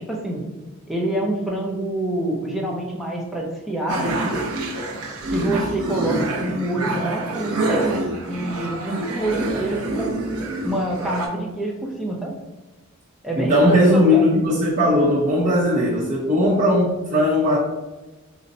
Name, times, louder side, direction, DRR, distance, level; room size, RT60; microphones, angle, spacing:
voice 1, 0.1-0.4 0.9-4.4 5.3-10.2 10.6-12.3 13.2-14.3, right 1 dB, ahead, -3 dB, 0.4 m, -26 dB
sound 1, 3.9-11.3, right 2 dB, 80° right, 0.5 m, -26 dB
voice 2, 13.4-17.6, left 1 dB, 35° right, -9 dB, 0.7 m, -18 dB
4.0 x 2.1 x 2.6 m, 1.1 s
head